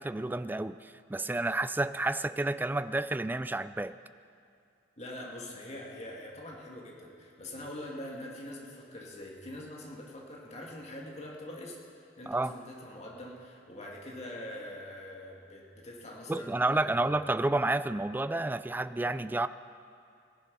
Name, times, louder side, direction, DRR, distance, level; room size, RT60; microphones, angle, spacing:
voice 1, 0.0-3.9 12.3-12.5 16.3-19.5, right 2 dB, 10° right, 13 dB, 0.3 m, -30 dB
voice 2, 5.0-17.1, left 1 dB, 40° left, -2 dB, 2.2 m, -44 dB
18.0 x 11.0 x 5.4 m, 2.4 s
head